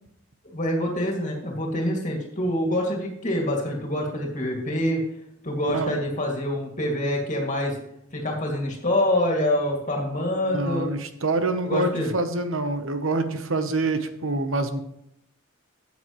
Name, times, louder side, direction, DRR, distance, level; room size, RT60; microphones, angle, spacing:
voice 1, 0.5-5.0 5.4-7.8 8.1-10.9 11.6-12.1, left 1 dB, 35° left, -1 dB, 2.4 m, -26 dB
voice 2, 5.6-5.9 10.4-14.8, right 2 dB, 70° right, 8 dB, 1.0 m, -26 dB
13.0 x 8.4 x 3.1 m, 0.77 s
head